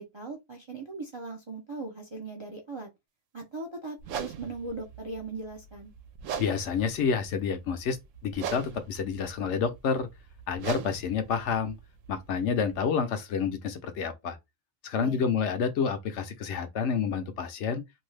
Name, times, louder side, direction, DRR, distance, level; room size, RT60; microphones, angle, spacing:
voice 1, 0.0-2.9 3.3-5.9 15.0-15.2, right 3 dB, 40° right, 0.4 m, -39 dB
sound 1, 4.0-12.8, right 7 dB, 75° right, 0.9 m, -41 dB
voice 2, 6.4-8.0 8.2-10.1 10.5-11.8 12.1-14.4 14.8-17.8, left 6 dB, 70° left, 0.9 m, -29 dB
2.7 x 2.3 x 3.2 m
omnidirectional pair, 1.3 m